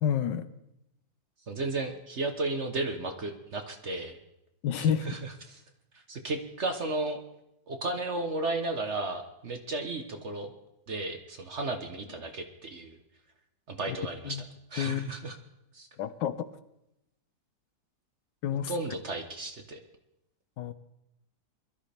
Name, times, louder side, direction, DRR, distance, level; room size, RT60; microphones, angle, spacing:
voice 1, 0.0-0.5 4.6-5.1 13.9-14.0 14.2-14.4 14.8-15.1 16.0-16.5 18.4-18.7 20.6-20.7, left 9 dB, 80° left, 13 dB, 1.4 m, -29 dB
voice 2, 1.5-4.2 4.8-5.6 5.9-7.2 7.7-10.5 10.9-13.0 13.7-14.4 14.7-15.3 15.7-15.9 18.7-19.8, right 2 dB, 45° right, 6 dB, 1.1 m, -34 dB
21.5 x 13.0 x 3.4 m, 0.88 s
omnidirectional pair, 2.0 m